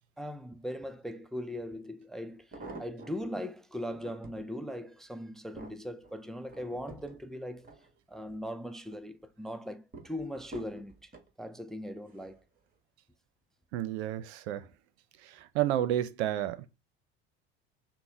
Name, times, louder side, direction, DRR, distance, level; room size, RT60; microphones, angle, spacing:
voice 1, 0.2-7.7 8.1-11.1 11.4-12.4, equal, ahead, 0.4 m, -40 dB
sound 1, 1.5-1.6 2.3-3.3 3.8-4.5 5.0-8.4 8.8-9.3 9.9-11.3 12.1-12.4 12.7-12.8, right 2 dB, 25° right, 1.5 m, -49 dB
voice 2, 13.7-14.7 15.2-16.7, right 12 dB, 80° right, 0.6 m, -31 dB
6.0 x 2.1 x 3.4 m
hypercardioid pair, 75°, 33 cm